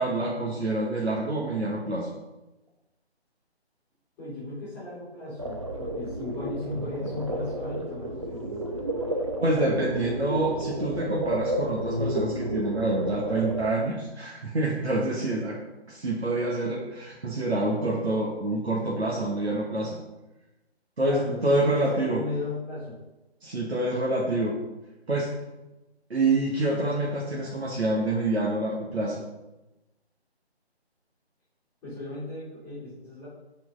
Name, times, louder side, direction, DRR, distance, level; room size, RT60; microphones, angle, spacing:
voice 1, 0.0-2.1 9.4-15.6 15.9-20.0 21.0-22.2 23.4-24.6 25.1-25.3 26.1-29.2, right 2 dB, 75° right, -4 dB, 1.4 m, -27 dB
voice 2, 4.2-8.6 21.0-23.0 31.8-33.3, left 2 dB, 5° left, -12 dB, 2.5 m, -36 dB
sound 1, 5.4-13.7, right 1 dB, 30° right, 0.5 m, -32 dB
6.1 x 4.5 x 5.2 m, 1.0 s
figure-of-eight pair, 155°, 32 cm